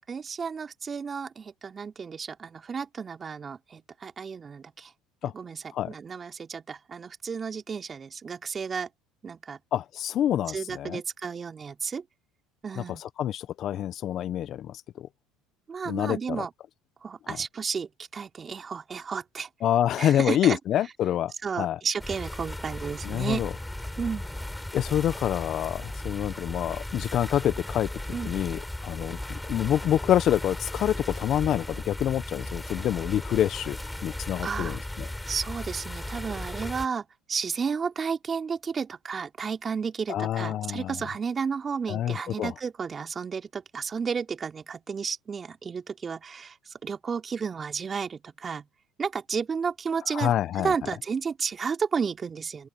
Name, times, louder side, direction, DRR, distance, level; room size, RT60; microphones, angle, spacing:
voice 1, 0.1-4.9 5.2-8.9 9.2-9.6 10.5-12.0 12.6-13.0 15.7-16.5 17.0-19.5 20.0-20.6 21.4-23.4 24.0-24.3 28.1-28.3 34.4-34.8 35.3-48.7 49.0-52.7, right 6 dB, 30° right, 3.5 m, -32 dB
voice 2, 9.7-11.0 13.2-15.1 15.8-16.4 19.6-21.3 21.6-21.8 23.0-23.5 24.7-27.9 28.2-35.1 40.1-40.9 41.9-42.5 50.1-50.7, left 11 dB, 50° left, 1.2 m, -27 dB
sound 1, 22.0-36.9, left 1 dB, 5° left, 6.1 m, -36 dB
open air
hypercardioid pair, 80°, 0 cm